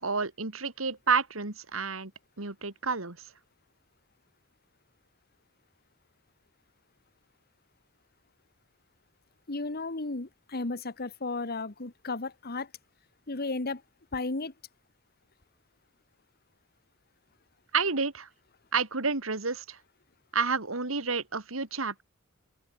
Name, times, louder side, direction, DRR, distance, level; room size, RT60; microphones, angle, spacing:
voice 1, 0.0-2.1 2.4-3.2 17.7-18.3 18.7-19.8 20.3-22.0, right 4 dB, 85° right, 2.9 m, -30 dB
voice 2, 9.5-12.7 13.3-13.8 14.1-14.5, left 3 dB, 50° left, 1.5 m, -34 dB
open air
head